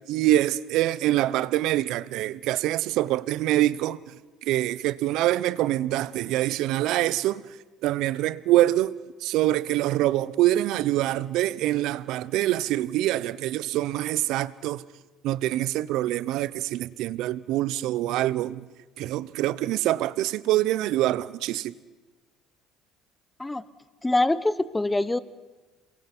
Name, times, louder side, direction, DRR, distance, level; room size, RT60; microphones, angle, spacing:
voice 1, 0.1-4.0 4.5-7.4 7.8-8.9 9.2-14.8 15.2-18.7 19.0-21.7, right 15 dB, 70° right, 0.8 m, -25 dB
voice 2, 24.0-25.2, left 2 dB, 15° left, 1.1 m, -24 dB
28.0 x 22.0 x 6.1 m
supercardioid pair, 85°, 0 cm